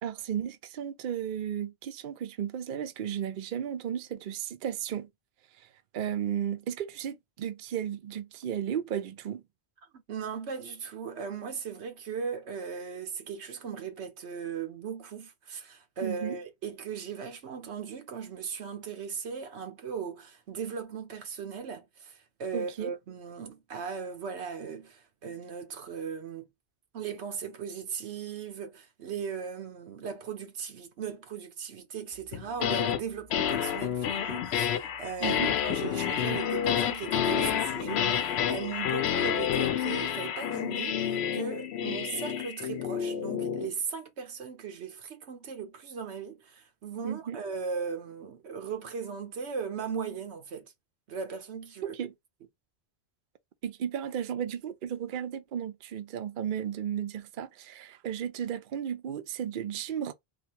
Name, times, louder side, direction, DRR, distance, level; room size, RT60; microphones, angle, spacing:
voice 1, 0.0-5.1 5.9-9.4 16.0-16.4 22.5-22.9 35.2-35.5 47.0-47.4 51.8-52.1 53.6-60.1, right 9 dB, 55° right, 0.7 m, -34 dB
voice 2, 10.1-26.5 26.9-50.7 51.1-52.0, right 6 dB, 90° right, 1.1 m, -38 dB
sound 1, 32.3-33.0 33.3-43.7, left 9 dB, 75° left, 0.8 m, -29 dB
3.7 x 2.7 x 2.9 m
omnidirectional pair, 1.1 m